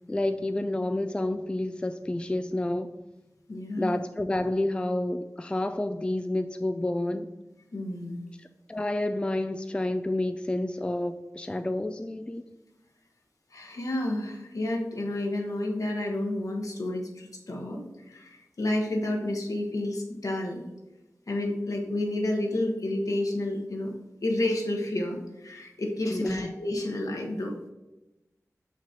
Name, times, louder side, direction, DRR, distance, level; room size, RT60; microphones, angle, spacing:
voice 1, 0.1-2.9 3.8-7.3 8.4-12.4 26.1-26.5, left 1 dB, 15° left, 8 dB, 0.3 m, -29 dB
voice 2, 3.5-3.9 7.7-8.2 13.5-20.7 21.3-23.9 24.2-27.5, left 1 dB, 75° left, 1 dB, 1.2 m, -30 dB
6.3 x 5.9 x 2.9 m, 0.98 s
wide cardioid pair, 75°, 6 cm